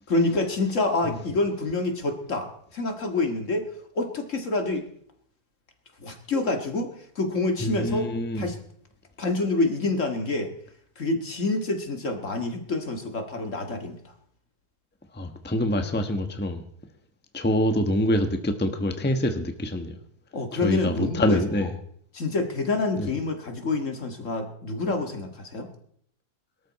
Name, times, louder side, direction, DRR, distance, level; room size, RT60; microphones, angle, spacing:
voice 1, 0.1-3.7 4.0-4.9 6.0-8.1 8.4-8.6 9.2-10.5 11.0-14.0 20.3-21.4 22.1-25.7, left 2 dB, 50° left, 2.2 m, -27 dB
voice 2, 7.6-8.5 15.1-16.6 17.3-19.9 20.5-21.7 23.0-23.1, left 1 dB, 5° left, 1.2 m, -25 dB
23.0 x 13.0 x 4.2 m
omnidirectional pair, 1.7 m